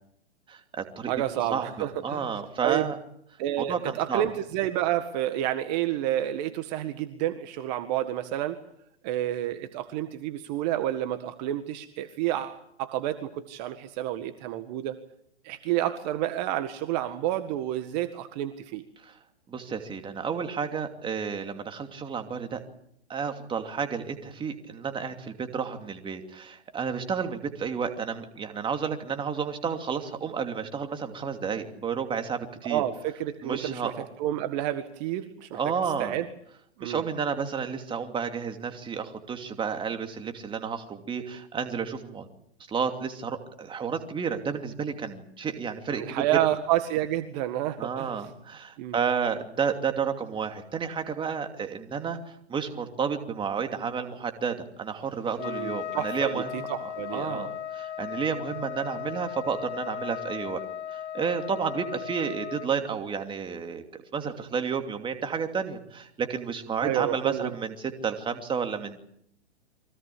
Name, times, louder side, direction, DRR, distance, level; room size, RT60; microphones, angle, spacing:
voice 1, 0.5-1.1 1.5-3.0 3.6-4.2 19.0-19.2 19.5-22.6 23.1-32.8 33.4-34.0 35.5-36.2 36.8-42.3 42.7-46.2 47.8-60.6 60.9-69.0, right 6 dB, 15° right, 6 dB, 2.7 m, -31 dB
voice 2, 1.1-2.3 2.6-2.9 3.4-8.6 9.0-15.0 15.4-18.8 32.7-33.9 34.2-35.6 36.0-36.3 36.8-37.0 45.9-48.1 48.8-49.0 55.4-56.4 56.7-57.5 66.8-67.5, right 12 dB, 40° right, 9 dB, 1.8 m, -29 dB
Trumpet, 55.4-62.7, left 9 dB, 75° left, 1.6 m, -37 dB
24.0 x 18.0 x 8.6 m, 0.73 s
hypercardioid pair, 135°, 34 cm